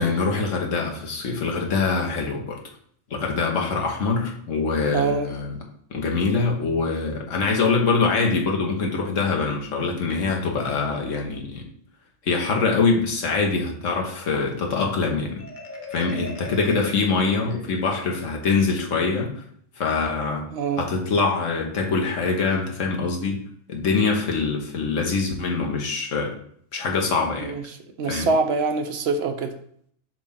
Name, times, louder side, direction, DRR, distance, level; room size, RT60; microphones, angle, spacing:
voice 1, 0.0-2.6 3.1-5.6 5.9-11.7 12.2-15.4 15.9-19.4 19.8-20.5 20.8-23.4 23.7-26.4 26.7-27.5 28.1-28.3, left 4 dB, 75° left, 1 dB, 1.4 m, -24 dB
voice 2, 4.9-5.3 20.5-20.9 27.4-27.6 28.0-29.5, right 4 dB, 60° right, 6 dB, 0.9 m, -24 dB
Marimba xylophone, 15.4-18.2, left 3 dB, 40° left, 0.9 m, -40 dB
7.4 x 2.5 x 5.7 m, 0.63 s
omnidirectional pair, 1.3 m